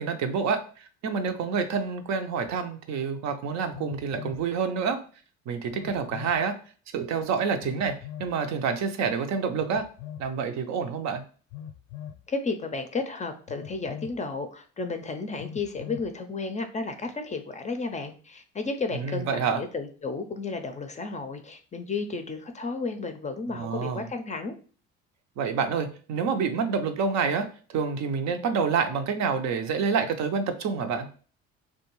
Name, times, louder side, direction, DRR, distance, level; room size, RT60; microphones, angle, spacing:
voice 1, 0.0-5.0 5.5-6.5 6.9-9.8 10.2-11.2 18.9-19.6 23.5-24.1 25.4-31.1, right 5 dB, 65° right, 7 dB, 0.5 m, -28 dB
Telephone, 2.4-2.5 3.7-4.5 5.7-6.4 7.6-8.3 9.6-10.3 11.5-12.2 13.5-14.2 15.4-16.1, left 10 dB, 80° left, 0.5 m, -41 dB
voice 2, 12.3-24.5, left 3 dB, 25° left, 7 dB, 0.4 m, -33 dB
2.5 x 2.2 x 3.0 m, 0.40 s
supercardioid pair, 80°, 30 cm